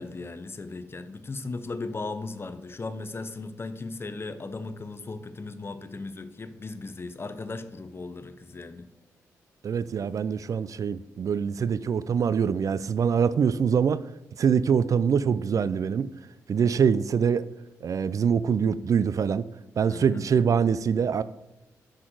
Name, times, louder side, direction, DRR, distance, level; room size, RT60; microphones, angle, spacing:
voice 1, 0.0-8.8 19.9-20.3, left 3 dB, 35° left, 0.7 m, -37 dB
voice 2, 9.6-14.0 14.4-16.1 16.5-17.5 17.8-19.5 19.8-21.2, right 7 dB, 55° right, 0.3 m, -24 dB
6.3 x 6.1 x 4.6 m
supercardioid pair, 50°, 7 cm